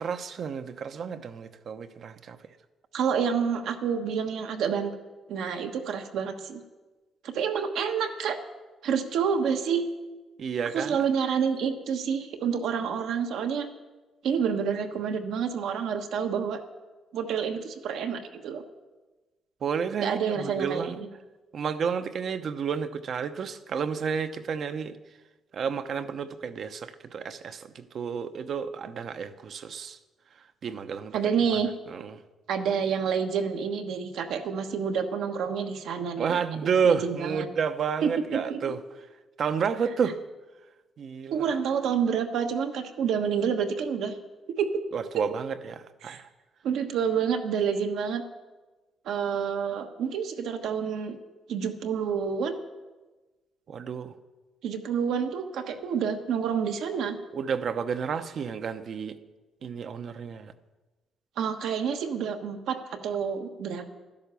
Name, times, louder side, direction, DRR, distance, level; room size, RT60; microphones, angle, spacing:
voice 1, 0.0-2.4 10.4-10.9 19.6-21.0 21.5-25.0 25.5-30.0 30.6-31.2 31.9-32.2 36.2-38.8 39.4-40.2 41.0-41.5 44.9-46.3 53.7-54.1 57.3-59.2 59.6-60.5, right 6 dB, 60° right, 9 dB, 0.8 m, -30 dB
voice 2, 2.9-4.9 5.3-6.6 7.2-8.4 8.8-9.8 10.7-13.7 14.2-16.6 17.1-18.6 20.0-21.1 31.1-31.7 32.5-37.5 38.0-38.8 41.3-44.2 44.6-44.8 45.1-45.2 46.0-46.2 46.6-48.2 49.0-51.2 51.5-52.6 54.6-57.2 61.4-63.9, right 7 dB, 80° right, 5 dB, 1.3 m, -28 dB
12.0 x 10.5 x 6.9 m, 1.2 s
cardioid pair, 90°, 0 cm